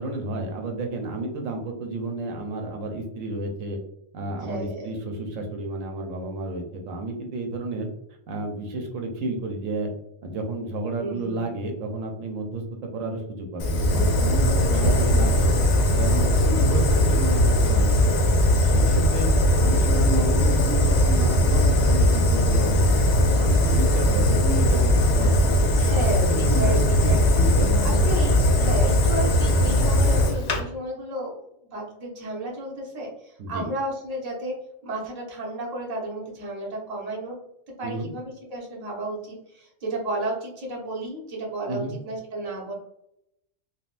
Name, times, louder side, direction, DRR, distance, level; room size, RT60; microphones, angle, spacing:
voice 1, 0.0-3.8 4.1-7.9 8.3-9.9 10.2-12.6 12.9-15.5 15.9-18.3 18.6-19.3 19.6-25.7 26.3-28.4 33.4-33.7 37.8-38.1 41.7-41.9, right 2 dB, 85° right, 2 dB, 1.0 m, -31 dB
voice 2, 4.4-5.0 11.0-11.5 14.7-15.1 15.4-15.6 25.7-27.5 27.8-31.5 31.7-34.5 34.8-37.4 37.8-42.7, right 2 dB, 35° right, -2 dB, 0.9 m, -32 dB
Fire, 13.6-30.6, left 1 dB, 65° left, 0.7 m, -19 dB
3.5 x 2.3 x 2.5 m, 0.77 s
omnidirectional pair, 1.3 m